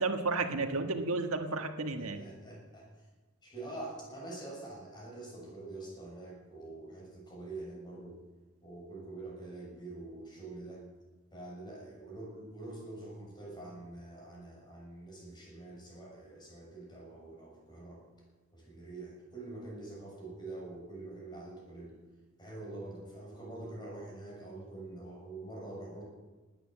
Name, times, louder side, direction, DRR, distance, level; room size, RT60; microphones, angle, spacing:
voice 1, 0.0-2.2, right 3 dB, 85° right, 6 dB, 1.5 m, -32 dB
voice 2, 1.9-3.1 3.4-8.2 8.6-10.8 11.3-18.0 18.5-21.9 22.4-26.0, right 2 dB, 20° left, -2 dB, 6.6 m, -45 dB
19.5 x 9.3 x 7.6 m, 1.2 s
head